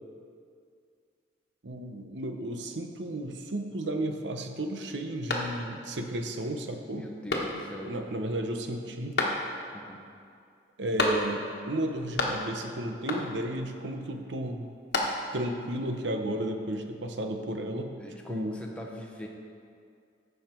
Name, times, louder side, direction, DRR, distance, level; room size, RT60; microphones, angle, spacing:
voice 1, 1.6-7.0 7.5-9.2 10.8-14.7 15.3-17.9 18.3-18.6, right 1 dB, 75° right, 5 dB, 0.9 m, -33 dB
sound 1, 5.3-6.0 6.4-6.5 7.3-7.9 9.2-9.8 11.0-11.6 11.8-12.7 13.1-13.6 14.6-15.5, left 2 dB, 60° left, 1.2 m, -31 dB
voice 2, 6.9-7.9 9.7-10.0 18.0-19.3, left 1 dB, 5° left, -1 dB, 0.9 m, -41 dB
14.5 x 5.8 x 4.5 m, 2.3 s
head